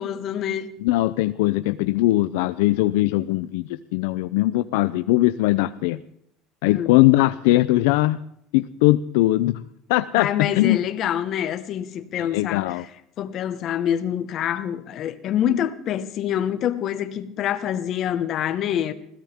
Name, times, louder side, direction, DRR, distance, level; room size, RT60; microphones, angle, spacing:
voice 1, 0.0-0.7 6.6-6.9 10.1-12.9 13.2-18.9, left 10 dB, 50° left, 1.4 m, -26 dB
voice 2, 0.8-6.0 6.6-8.2 8.5-9.6 9.9-10.8 12.2-12.8, left 17 dB, 85° left, 0.5 m, -20 dB
21.0 x 16.5 x 3.6 m
cardioid pair, 130°, 0 cm